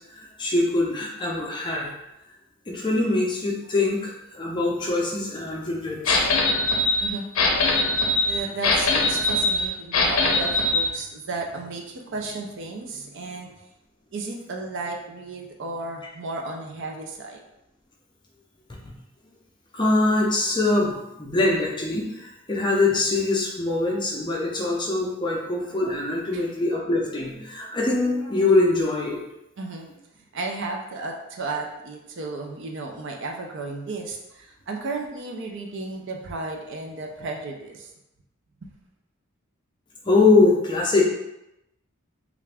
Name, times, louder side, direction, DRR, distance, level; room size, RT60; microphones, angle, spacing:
voice 1, 0.2-1.9 2.7-6.5 19.7-29.2 40.0-41.0, left 2 dB, 20° left, -2 dB, 0.5 m, -23 dB
sound 1, 6.1-10.9, left 2 dB, 70° left, 0.6 m, -22 dB
voice 2, 8.2-13.5 14.1-17.4 26.3-26.4 29.6-29.9 30.3-37.9 38.6-38.7, right 3 dB, 55° right, 2 dB, 0.5 m, -34 dB
3.3 x 2.5 x 3.3 m, 0.88 s
head